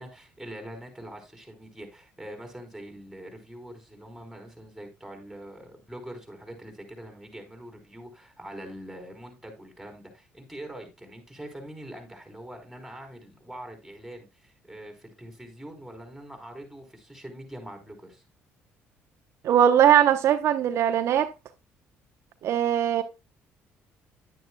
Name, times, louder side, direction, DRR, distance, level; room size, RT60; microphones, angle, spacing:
voice 1, 0.0-18.2, right 1 dB, ahead, 4.1 m, -43 dB
voice 2, 19.4-21.3 22.4-23.0, right 10 dB, 65° right, 0.9 m, -20 dB
10.5 x 9.1 x 2.3 m
cardioid pair, 90°, 5 cm